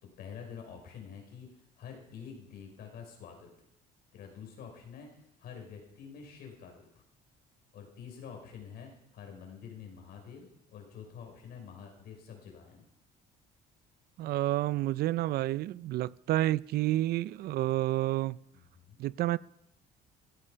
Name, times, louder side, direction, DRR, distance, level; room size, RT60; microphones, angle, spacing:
voice 1, 0.0-1.5 1.8-3.5 4.1-6.9 7.7-12.8 18.5-19.0, left 7 dB, 70° left, 5.5 m, -47 dB
voice 2, 14.2-18.4 19.0-19.4, right 15 dB, 65° right, 0.4 m, -29 dB
15.5 x 14.0 x 5.7 m
cardioid pair, 110°, 17 cm